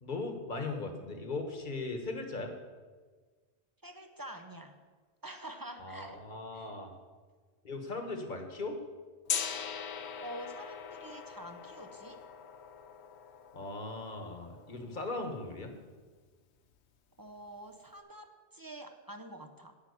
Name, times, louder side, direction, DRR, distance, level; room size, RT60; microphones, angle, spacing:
voice 1, 0.0-2.5 5.8-6.9 7.6-8.8 13.5-15.7, left 3 dB, 45° left, 5 dB, 1.5 m, -38 dB
voice 2, 3.8-4.8 5.2-6.2 6.5-6.7 10.2-12.2 17.2-19.7, right 1 dB, 20° right, 5 dB, 0.7 m, -47 dB
Gong, 9.3-15.2, left 7 dB, 75° left, 1.1 m, -41 dB
10.5 x 5.9 x 8.4 m, 1.4 s
omnidirectional pair, 1.1 m